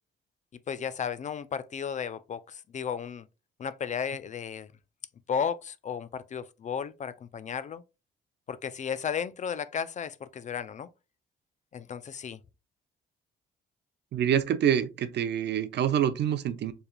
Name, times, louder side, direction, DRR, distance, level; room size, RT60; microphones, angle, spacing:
voice 1, 0.7-3.2 3.6-4.7 5.3-7.8 8.5-10.9 11.7-12.4, left 7 dB, 40° left, 0.4 m, -34 dB
voice 2, 14.1-16.7, right 9 dB, 60° right, 0.6 m, -26 dB
4.6 x 3.3 x 2.2 m
cardioid pair, 90°, 20 cm